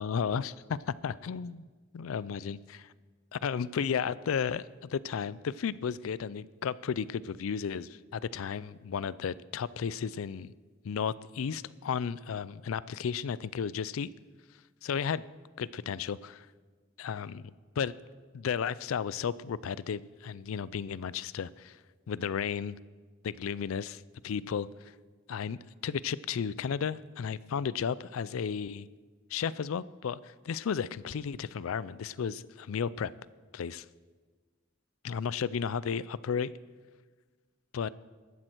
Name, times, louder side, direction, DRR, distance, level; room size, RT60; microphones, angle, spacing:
voice 1, 0.0-1.6 1.9-2.9 3.3-10.5 10.8-14.1 14.8-15.2 15.6-16.5 17.0-17.9 18.3-21.8 22.1-22.8 23.2-24.9 25.3-25.6 25.8-28.9 29.3-33.1 33.5-33.9 35.0-36.5 37.7-37.9, left 7 dB, 90° left, 19 dB, 0.4 m, -33 dB
14.0 x 12.0 x 4.5 m, 1.4 s
head